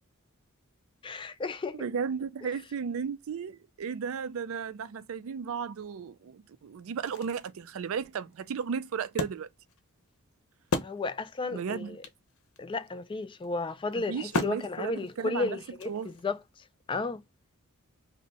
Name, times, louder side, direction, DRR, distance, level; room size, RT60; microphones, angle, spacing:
voice 1, 1.0-1.9 10.8-12.0 12.6-16.4 16.9-17.2, left 3 dB, 25° left, 0.3 m, -33 dB
voice 2, 1.7-9.5 11.5-12.0 13.9-15.6 15.9-16.1, right 6 dB, 65° right, 0.4 m, -35 dB
Wood, 6.3-6.4 6.8-11.5 11.8-11.9 12.0-16.4, left 3 dB, 80° left, 0.7 m, -37 dB
2.7 x 2.1 x 3.9 m
head